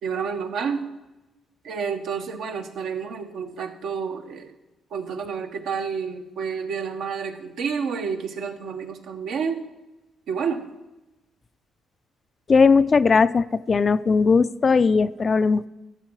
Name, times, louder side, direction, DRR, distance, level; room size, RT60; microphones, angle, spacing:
voice 1, 0.0-0.9 1.6-4.5 4.9-9.7 10.3-10.6, right 6 dB, 75° right, 5 dB, 1.1 m, -29 dB
voice 2, 12.5-15.7, left 4 dB, 40° left, 15 dB, 0.4 m, -18 dB
13.0 x 7.5 x 4.6 m, 1.0 s
cardioid pair, 90°, 0 cm